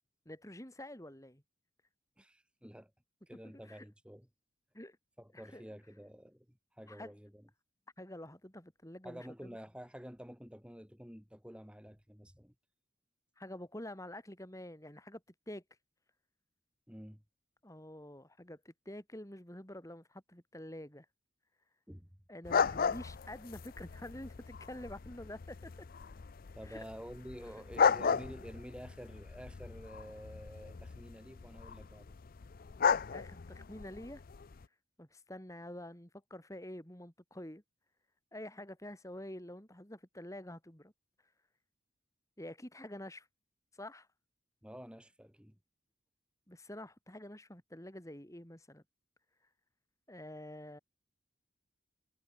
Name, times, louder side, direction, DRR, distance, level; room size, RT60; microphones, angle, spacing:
voice 1, 0.3-1.4 3.6-3.9 4.7-5.0 5.3-5.6 6.9-7.1 8.0-9.6 13.4-15.2 15.5-15.6 17.6-21.1 22.3-25.6 26.6-26.9 33.1-34.2 35.0-37.6 38.3-40.9 42.4-43.3 43.7-44.1 46.5-48.8 50.1-50.8, left 1 dB, 15° left, 3.9 m, -47 dB
voice 2, 2.2-2.9 3.3-4.3 5.2-7.5 9.0-12.5 16.9-17.2 21.9-22.1 26.6-32.2 44.6-45.6, equal, 5° right, 5.3 m, -50 dB
sound 1, 22.4-34.6, left 6 dB, 45° left, 0.5 m, -35 dB
head